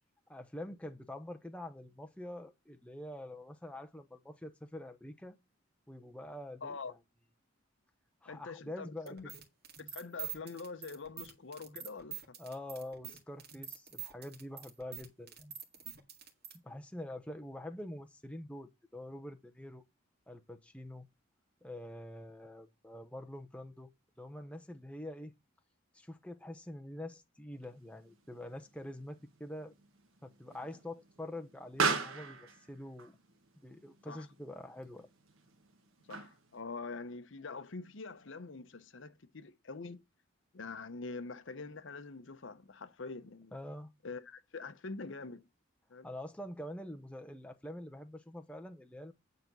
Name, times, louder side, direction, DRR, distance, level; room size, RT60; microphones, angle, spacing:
voice 1, 0.3-5.4 5.9-7.0 8.2-9.2 12.4-15.3 16.6-19.8 20.3-21.1 21.6-23.9 24.2-25.3 25.9-29.7 30.2-33.2 33.6-35.1 43.5-43.9 46.0-49.1, left 1 dB, 5° left, 0.9 m, -45 dB
voice 2, 6.6-6.9 8.3-9.3 9.9-12.4 16.7-16.8 34.0-34.3 36.1-40.0 40.5-43.5 44.0-45.4 45.9-46.1, left 4 dB, 65° left, 0.8 m, -45 dB
sound 1, 9.1-16.6, right 9 dB, 50° right, 2.0 m, -45 dB
Explosion, 27.6-36.6, right 4 dB, 80° right, 1.4 m, -40 dB
9.4 x 3.9 x 6.1 m
head